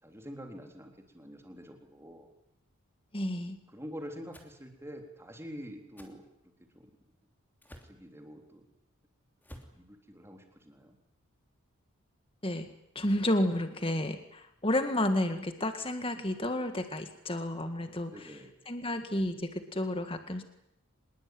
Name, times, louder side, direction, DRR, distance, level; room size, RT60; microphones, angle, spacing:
voice 1, 0.0-2.3 3.7-6.2 6.7-6.9 7.8-8.6 9.7-11.0 18.1-18.5, equal, 10° right, 4 dB, 3.7 m, -46 dB
voice 2, 3.1-3.6 12.4-12.7 13.0-18.3 18.7-20.4, left 1 dB, 25° left, 8 dB, 2.0 m, -31 dB
sound 1, 4.3-4.5 6.0-6.1 7.6-8.0 9.4-9.8, equal, 10° left, 3.0 m, -50 dB
26.0 x 21.0 x 9.5 m, 0.77 s
head